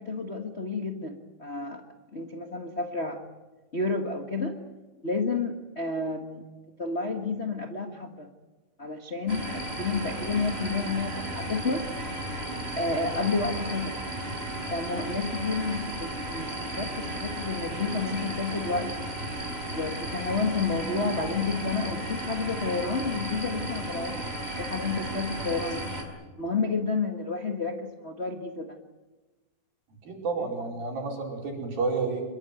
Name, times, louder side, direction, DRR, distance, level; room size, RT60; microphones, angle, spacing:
voice 1, 0.0-1.8 2.1-3.2 3.7-4.5 5.0-6.4 6.8-8.3 8.8-11.9 12.8-14.0 14.7-18.9 19.7-25.8 26.3-28.8 30.4-30.5, left 4 dB, 55° left, 3 dB, 0.7 m, -30 dB
sound 1, 9.3-26.0, right 1 dB, 15° right, 4.8 m, -34 dB
voice 2, 30.0-32.2, right 4 dB, 70° right, 0 dB, 6.7 m, -30 dB
25.0 x 22.5 x 9.2 m, 1.2 s
omnidirectional pair, 4.2 m